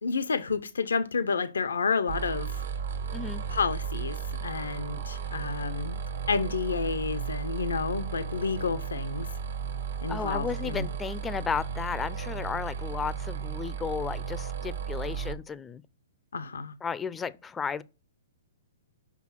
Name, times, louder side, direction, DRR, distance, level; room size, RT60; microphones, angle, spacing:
voice 1, 0.0-2.6 3.5-4.2 4.4-6.0 6.3-9.3 10.0-10.9 16.3-16.7, left 5 dB, 90° left, 0.7 m, -30 dB
sound 1, 2.1-15.3, right 6 dB, 75° right, 1.6 m, -34 dB
voice 2, 10.1-15.8 16.8-17.8, left 6 dB, 15° left, 0.5 m, -34 dB
6.0 x 5.7 x 5.8 m
hypercardioid pair, 140°, 0 cm